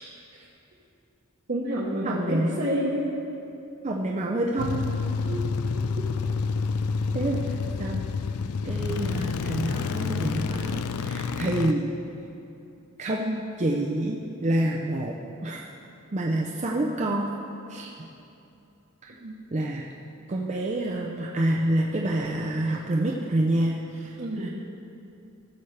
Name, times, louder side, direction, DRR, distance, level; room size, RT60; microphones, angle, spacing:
voice 1, 1.5-3.1 5.2-5.4 19.2-19.4 24.2-24.5, equal, 55° right, -7 dB, 1.1 m, -29 dB
voice 2, 2.0-2.6 3.8-4.9 7.1-7.4 7.8-8.1 8.6-11.9 13.0-15.1 15.4-15.7 16.1-17.3 17.7-17.9 19.0-19.1 19.5-19.9 20.3-24.5, right 1 dB, 30° right, -2 dB, 0.5 m, -27 dB
sound 1, 4.6-11.7, left 4 dB, 90° left, 0.4 m, -28 dB
15.5 x 7.1 x 3.3 m, 2.8 s
head